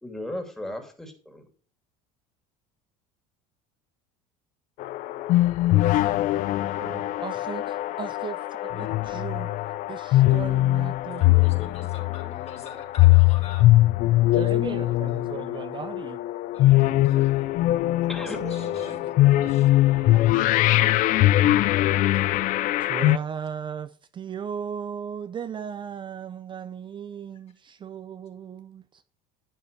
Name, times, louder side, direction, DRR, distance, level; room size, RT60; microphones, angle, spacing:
voice 1, 0.0-1.5 6.8-7.0 18.1-18.5 18.9-19.0, left 1 dB, 5° left, 2.6 m, -36 dB
sound 1, 4.8-23.2, left 16 dB, 55° left, 0.5 m, -21 dB
voice 2, 7.2-11.4 14.3-16.2 18.2-19.5 19.9-20.4 22.8-29.0, right 8 dB, 30° right, 0.6 m, -37 dB
voice 3, 11.2-13.8 14.3-15.2 16.5-17.5 18.0-19.7 21.3-22.1, left 5 dB, 40° left, 3.6 m, -45 dB
11.0 x 9.0 x 3.3 m
supercardioid pair, 110°, 16 cm